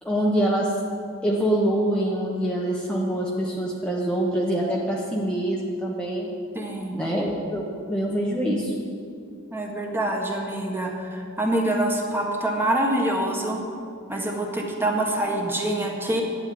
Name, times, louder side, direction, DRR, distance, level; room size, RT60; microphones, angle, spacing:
voice 1, 0.0-0.7 1.2-6.3 6.9-8.7, right 1 dB, 5° left, -4 dB, 1.3 m, -25 dB
voice 2, 6.5-7.0 9.5-13.6 14.1-16.2, right 1 dB, 10° right, 0 dB, 1.6 m, -25 dB
11.5 x 8.6 x 9.4 m, 2.5 s
head